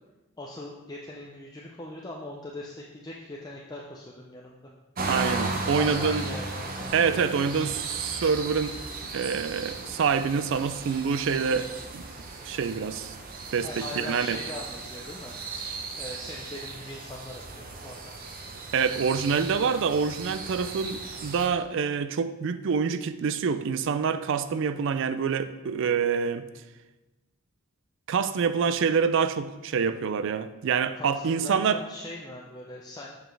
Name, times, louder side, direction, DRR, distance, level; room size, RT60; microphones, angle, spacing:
voice 1, 0.4-4.7 5.8-7.7 13.6-15.3 15.9-18.1 30.9-33.2, left 2 dB, 20° left, 0.5 m, -40 dB
sound 1, 5.0-21.5, right 3 dB, 40° right, 0.7 m, -36 dB
voice 2, 5.1-6.3 6.9-8.7 9.1-12.1 12.4-13.2 13.5-14.4 18.7-26.4 28.1-31.8, right 6 dB, 60° right, 0.4 m, -26 dB
7.1 x 6.0 x 3.3 m
head